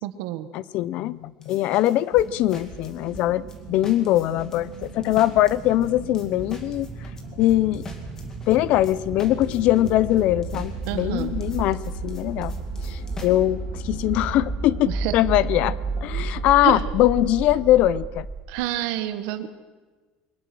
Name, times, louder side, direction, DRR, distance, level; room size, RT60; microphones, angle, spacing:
voice 1, 0.0-0.5 10.9-11.4 14.9-15.1 16.6-16.8 18.5-19.5, right 14 dB, 80° right, 10 dB, 1.5 m, -28 dB
voice 2, 0.5-6.9 7.4-7.9 8.5-12.5 12.8-18.3, left 14 dB, 50° left, 20 dB, 0.5 m, -22 dB
sound 1, 1.4-3.6 3.8-13.3, left 2 dB, 20° left, 2.1 m, -42 dB
sound 2, 2.1-18.0, right 7 dB, 40° right, 3.0 m, -42 dB
sound 3, 2.9-18.5, right 3 dB, 25° right, 5.0 m, -33 dB
22.5 x 20.0 x 6.2 m, 1.4 s
cardioid pair, 170°, 3 cm